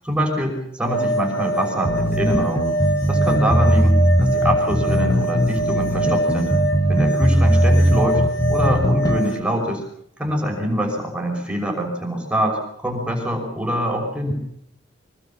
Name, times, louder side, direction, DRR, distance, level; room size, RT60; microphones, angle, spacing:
voice 1, 0.1-2.7 3.1-6.6 6.9-8.2 8.5-9.8 10.2-14.3, equal, 5° right, 0 dB, 5.7 m, -24 dB
sound 1, 0.8-9.4, right 1 dB, 55° left, 3.4 m, -24 dB
sound 2, 1.8-9.2, equal, 20° left, 2.3 m, -19 dB
25.0 x 20.0 x 7.5 m, 0.71 s
head